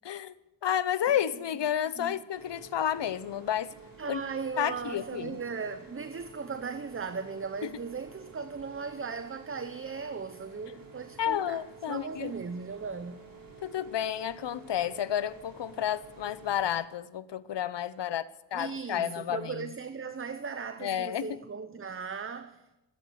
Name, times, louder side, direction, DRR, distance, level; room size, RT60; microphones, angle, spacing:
voice 1, 0.6-3.7 4.1-4.2 4.6-5.4 7.6-7.7 11.2-12.3 13.6-18.3 18.5-19.7 20.8-21.4, left 10 dB, 65° left, 0.9 m, -31 dB
sound 1, 2.3-16.7, right 4 dB, 50° right, 3.7 m, -51 dB
voice 2, 4.0-11.6 11.9-13.2 18.5-22.8, right 5 dB, 30° right, 0.8 m, -37 dB
23.0 x 8.7 x 6.5 m
cardioid pair, 65°, 45 cm